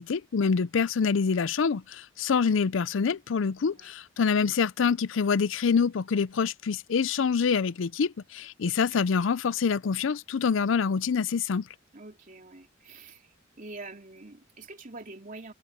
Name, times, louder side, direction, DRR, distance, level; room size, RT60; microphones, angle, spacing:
voice 1, 0.0-11.6, left 5 dB, 70° left, 0.5 m, -26 dB
voice 2, 3.6-3.9 8.9-9.0 11.9-13.3 13.6-15.5, right 2 dB, 45° right, 3.0 m, -45 dB
head